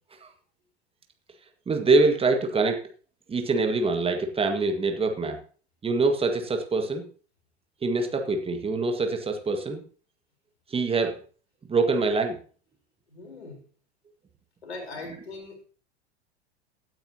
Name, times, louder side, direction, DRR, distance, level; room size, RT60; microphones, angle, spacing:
voice 1, 1.7-2.8 3.3-5.4 5.8-7.1 7.8-9.8 10.7-11.2 11.7-12.4, right 3 dB, 15° right, 5 dB, 1.8 m, -24 dB
voice 2, 13.1-13.6 14.6-15.6, left 3 dB, 70° left, 3 dB, 4.1 m, -40 dB
16.0 x 9.1 x 2.9 m, 0.39 s
figure-of-eight pair, 85°, 33 cm